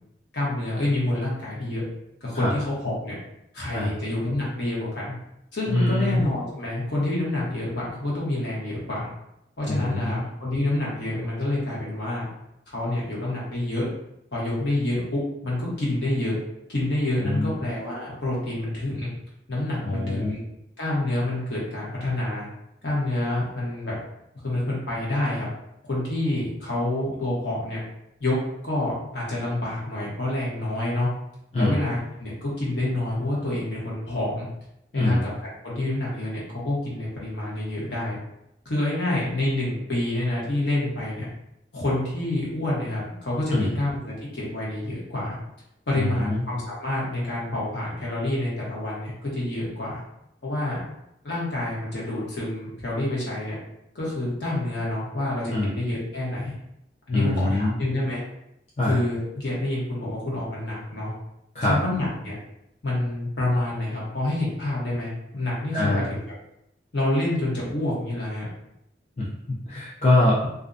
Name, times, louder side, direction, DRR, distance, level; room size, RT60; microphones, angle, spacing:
voice 1, 0.3-1.8 2.2-3.1 3.5-5.2 5.5-9.1 9.6-12.3 12.7-13.9 14.3-16.4 16.7-19.1 19.5-20.4 20.8-22.5 22.8-23.9 24.4-25.5 25.8-27.8 28.2-28.4 28.6-31.1 31.6-34.5 34.9-35.3 35.6-38.2 38.6-41.3 41.7-45.4 45.9-50.0 50.4-50.8 51.2-53.6 53.9-56.5 57.1-58.2 58.8-61.1 61.6-62.4 62.8-66.2 66.9-68.5, left 1 dB, 70° left, -6 dB, 0.9 m, -27 dB
voice 2, 5.7-6.2 9.7-10.3 17.2-17.6 19.8-20.3 31.5-31.8 34.9-35.2 43.5-43.7 45.9-46.4 55.5-55.7 57.1-57.7 58.8-58.9 61.5-61.8 65.7-66.1 69.2-70.5, left 1 dB, 35° left, -7 dB, 0.4 m, -24 dB
2.4 x 2.1 x 2.5 m, 0.82 s
head